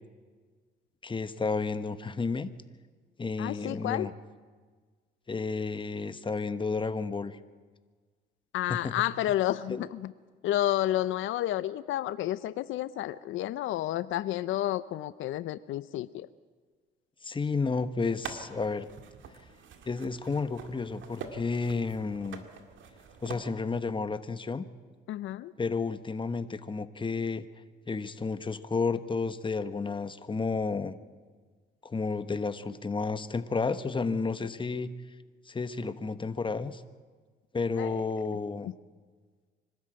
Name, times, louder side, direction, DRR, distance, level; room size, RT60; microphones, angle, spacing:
voice 1, 1.0-2.5 3.2-4.1 5.3-7.4 8.7-8.9 9.7-9.8 17.2-18.9 19.8-22.4 23.2-24.6 25.6-27.4 27.9-31.0 31.8-34.9 35.5-36.8 37.5-38.7, left 4 dB, 25° left, 11 dB, 1.1 m, -31 dB
voice 2, 3.4-4.1 8.5-10.1 10.4-16.3 25.1-25.5 37.7-38.1, left 13 dB, 80° left, 15 dB, 0.6 m, -31 dB
sound 1, 18.0-23.4, right 6 dB, 75° right, 2.1 m, -45 dB
24.5 x 13.0 x 8.8 m, 1.5 s
cardioid pair, 90°, 20 cm